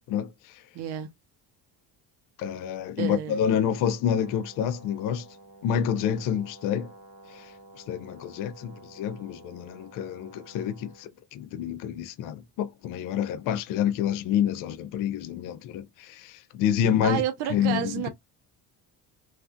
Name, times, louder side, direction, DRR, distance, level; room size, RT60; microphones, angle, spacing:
voice 1, 0.1-0.6 2.4-5.3 5.6-6.9 7.3-7.5 7.9-17.2 17.5-18.1, left 9 dB, 55° left, 0.4 m, -28 dB
voice 2, 0.7-1.1 3.0-3.4 17.0-18.1, right 11 dB, 70° right, 0.8 m, -30 dB
Brass instrument, 4.1-11.1, right 2 dB, 55° right, 1.0 m, -51 dB
3.2 x 2.6 x 2.3 m
cardioid pair, 165°, 40 cm